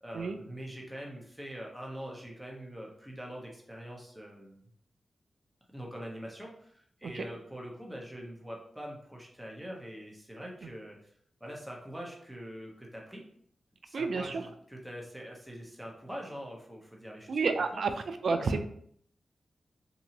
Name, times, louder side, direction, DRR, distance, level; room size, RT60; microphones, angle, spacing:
voice 1, 0.0-4.6 5.7-11.1 11.4-13.2 13.8-17.4 17.7-17.8 18.4-18.6, equal, 10° right, -2 dB, 1.0 m, -44 dB
voice 2, 13.9-14.4 17.3-18.6, right 4 dB, 70° right, 8 dB, 0.3 m, -30 dB
2.7 x 2.7 x 2.7 m, 0.65 s
cardioid pair, 45°, 0 cm